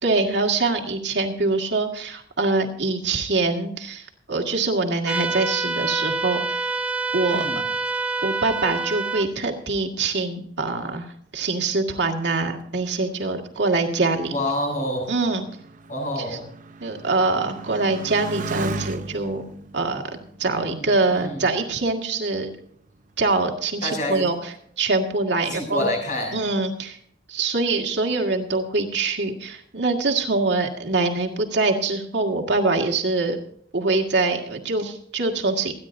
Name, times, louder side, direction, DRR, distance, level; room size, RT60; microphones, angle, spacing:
voice 1, 0.0-6.7 7.1-7.4 8.2-11.1 11.3-14.3 15.1-15.4 16.8-19.4 19.7-20.0 20.4-22.5 23.2-24.4 24.8-25.9 26.3-27.0 27.3-33.4 33.7-35.7, right 3 dB, 75° right, 2 dB, 2.0 m, -24 dB
sound 1, 5.1-9.2, right 3 dB, 5° right, 0.9 m, -26 dB
voice 2, 7.3-7.6 14.3-15.1 15.9-16.5 20.5-21.5 23.8-24.2 25.4-26.4, left 1 dB, 45° left, 1 dB, 6.8 m, -28 dB
Motorcycle, 12.7-21.7 22.4-23.0, right 3 dB, 45° right, 0.7 m, -38 dB
27.5 x 10.0 x 2.6 m, 0.63 s
head